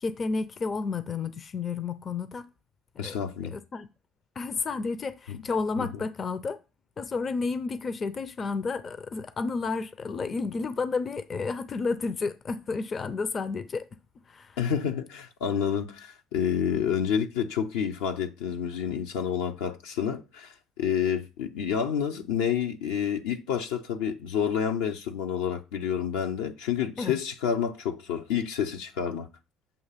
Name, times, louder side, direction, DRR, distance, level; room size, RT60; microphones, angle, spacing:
voice 1, 0.0-2.5 3.0-3.2 3.5-3.9 4.4-6.6 7.0-13.9 14.3-14.6 27.0-27.2, left 4 dB, 40° left, 0.6 m, -31 dB
voice 2, 3.0-3.5 5.3-5.4 5.8-6.0 14.6-29.3, left 8 dB, 80° left, 0.8 m, -29 dB
7.1 x 2.9 x 5.7 m
hypercardioid pair, 60°, 0 cm